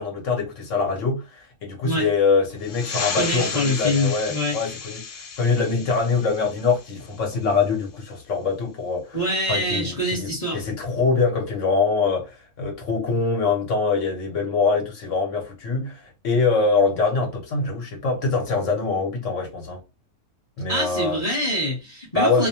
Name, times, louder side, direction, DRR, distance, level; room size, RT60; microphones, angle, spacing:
voice 1, 0.0-5.0 5.4-9.2 9.5-19.8 20.6-21.2 22.1-22.5, left 4 dB, 60° left, 1.1 m, -24 dB
sound 1, 2.6-7.7, left 5 dB, 90° left, 0.4 m, -34 dB
voice 2, 3.1-4.6 9.1-10.6 20.7-22.5, equal, 30° left, 0.9 m, -25 dB
2.5 x 2.1 x 2.8 m
omnidirectional pair, 1.5 m